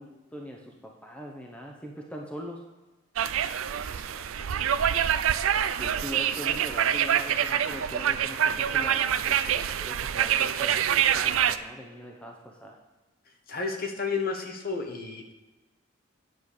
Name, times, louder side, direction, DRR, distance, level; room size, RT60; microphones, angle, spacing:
voice 1, 0.0-2.6 5.8-12.8, equal, 5° left, 0 dB, 0.8 m, -42 dB
sound 1, 3.2-11.6, right 9 dB, 80° right, 0.4 m, -26 dB
voice 2, 3.8-4.7 13.5-15.3, left 4 dB, 45° left, 3 dB, 1.2 m, -33 dB
9.4 x 7.2 x 4.8 m, 1.1 s
head